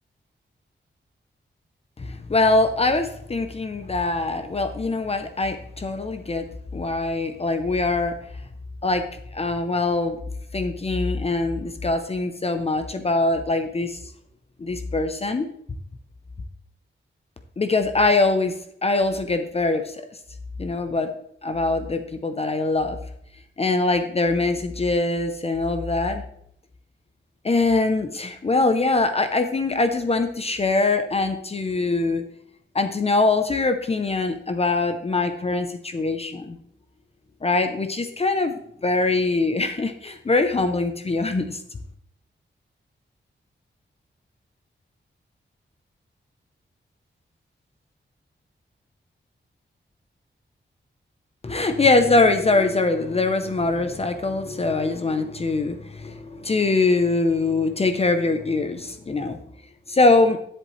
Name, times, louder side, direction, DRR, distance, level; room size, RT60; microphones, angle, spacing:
voice 1, 2.0-6.4 6.7-8.1 8.8-9.0 9.3-10.2 10.5-14.0 14.6-15.5 17.6-18.5 18.8-20.0 20.6-21.1 21.4-23.0 23.6-26.2 27.4-32.3 32.7-36.6 37.4-38.5 38.8-41.6 51.4-59.4 59.9-60.4, left 3 dB, 30° left, 7 dB, 0.7 m, -23 dB
10.5 x 7.6 x 3.2 m, 0.69 s
wide cardioid pair, 165°, 20 cm